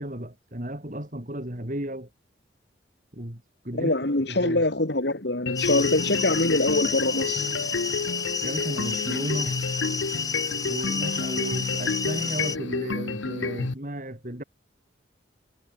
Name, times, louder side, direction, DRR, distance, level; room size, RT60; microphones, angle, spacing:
voice 1, 0.0-2.1 3.1-4.0 4.3-4.6 8.4-9.6 10.7-14.4, right 1 dB, 40° right, 3.7 m, -34 dB
voice 2, 3.7-7.5, left 2 dB, 60° left, 2.1 m, -24 dB
sound 1, 5.5-13.7, left 3 dB, 85° left, 1.1 m, -30 dB
sound 2, 5.6-12.6, left 5 dB, 20° left, 1.5 m, -30 dB
head